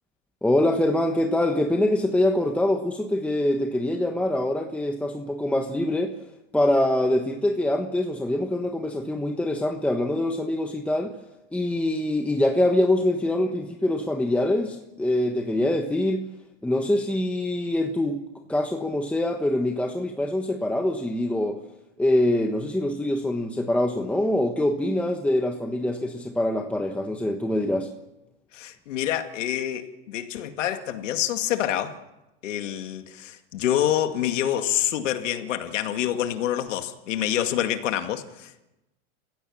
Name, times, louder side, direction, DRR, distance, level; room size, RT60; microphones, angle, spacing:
voice 1, 0.4-6.1 6.5-11.1 11.5-16.2 16.6-18.2 18.5-21.6 22.0-27.9, left 1 dB, 5° left, 1.2 m, -24 dB
voice 2, 28.5-32.0 32.4-38.6, left 11 dB, 80° left, 2.2 m, -27 dB
28.5 x 16.0 x 7.3 m
supercardioid pair, 145°, 36 cm